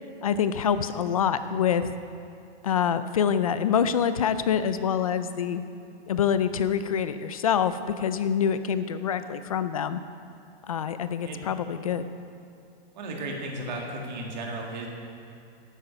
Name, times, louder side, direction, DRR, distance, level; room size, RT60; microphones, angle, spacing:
voice 1, 0.2-1.9 2.6-5.6 6.1-10.0 10.7-12.1, left 8 dB, 35° left, 12 dB, 0.4 m, -26 dB
voice 2, 12.9-14.9, right 2 dB, 45° right, 0 dB, 2.1 m, -34 dB
12.0 x 9.1 x 5.8 m, 2.4 s
hypercardioid pair, 175°, 31 cm